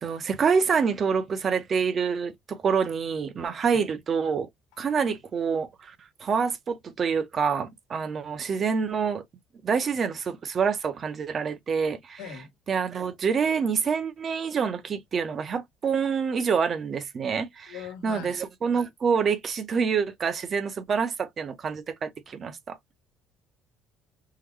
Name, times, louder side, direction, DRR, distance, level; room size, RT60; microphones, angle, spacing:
voice 1, 0.0-4.5 4.8-5.9 6.2-9.2 9.6-12.2 12.7-17.7 18.0-22.8, right 6 dB, 30° right, 0.6 m, -27 dB
voice 2, 12.2-12.5 17.7-18.4, left 7 dB, 85° left, 1.1 m, -40 dB
3.8 x 2.1 x 3.1 m
cardioid pair, 140°, 0 cm